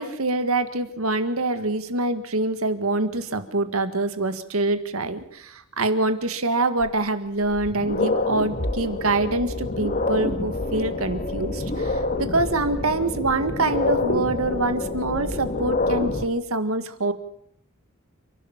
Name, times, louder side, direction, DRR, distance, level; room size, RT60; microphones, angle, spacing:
voice 1, 0.0-17.1, right 2 dB, 75° right, 10 dB, 1.9 m, -25 dB
sound 1, 6.8-6.9 7.4-16.2, left 2 dB, 40° left, 2.1 m, -27 dB
30.0 x 12.0 x 7.4 m, 0.69 s
head